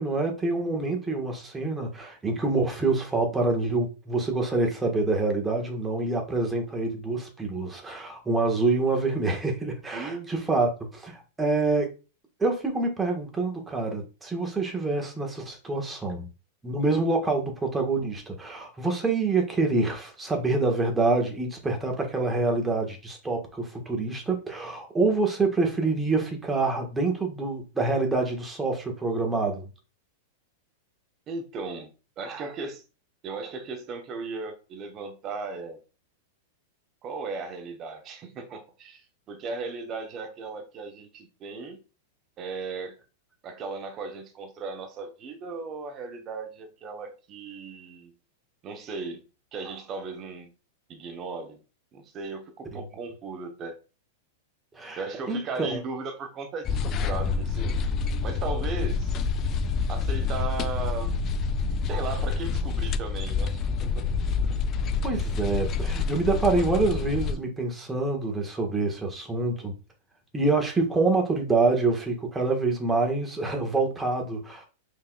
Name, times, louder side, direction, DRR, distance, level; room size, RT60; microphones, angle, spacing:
voice 1, 0.0-11.9 12.4-16.3 16.6-29.7 52.7-52.8 54.8-55.0 55.3-55.8 65.0-69.7 70.3-74.6, right 3 dB, 15° right, 1.4 m, -26 dB
voice 2, 9.9-10.3 31.3-31.9 32.2-32.8 33.2-35.8 37.0-41.8 42.4-43.0 43.4-48.1 48.6-49.2 49.5-50.5 50.9-51.6 51.9-53.8 55.0-57.9 58.2-59.2 59.9-61.2 61.9-64.1 65.1-65.2 66.4-67.0, right 4 dB, 35° right, 1.0 m, -36 dB
sound 1, 56.6-67.3, left 5 dB, 35° left, 0.4 m, -27 dB
5.6 x 3.3 x 2.3 m
hypercardioid pair, 105°, 0 cm